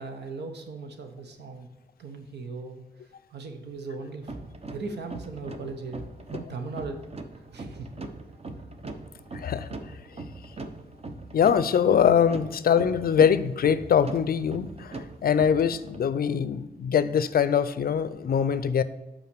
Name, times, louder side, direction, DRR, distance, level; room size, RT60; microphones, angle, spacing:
voice 1, 0.0-1.7 2.0-2.8 3.3-7.0 7.5-7.9, right 4 dB, 75° right, 6 dB, 0.9 m, -38 dB
sound 1, 4.2-16.1, right 2 dB, 35° right, 0.8 m, -41 dB
voice 2, 9.3-9.7 11.3-18.8, left 8 dB, 60° left, 15 dB, 0.5 m, -23 dB
5.6 x 4.2 x 6.1 m, 1.0 s
supercardioid pair, 45°, 18 cm